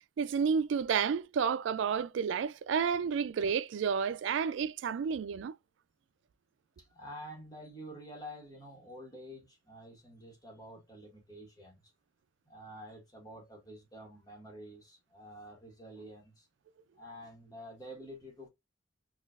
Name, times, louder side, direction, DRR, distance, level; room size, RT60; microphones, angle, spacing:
voice 1, 0.2-5.5, right 6 dB, 85° right, 0.3 m, -31 dB
voice 2, 6.8-11.9 12.4-16.5 16.9-18.5, equal, 20° left, 1.3 m, -49 dB
3.8 x 2.4 x 2.4 m
head